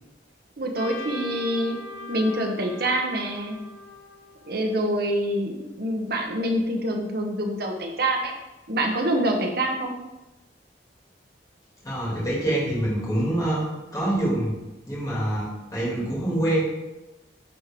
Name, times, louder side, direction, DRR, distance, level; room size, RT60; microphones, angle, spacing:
voice 1, 0.6-1.8 2.1-3.6 4.4-8.3 8.7-9.9, right 1 dB, 60° right, 3 dB, 1.0 m, -26 dB
Trumpet, 0.7-4.9, left 3 dB, 85° left, 0.7 m, -40 dB
voice 2, 11.8-14.5 14.9-16.6, right 1 dB, 20° left, -7 dB, 2.2 m, -25 dB
10.0 x 3.7 x 3.6 m, 1.0 s
head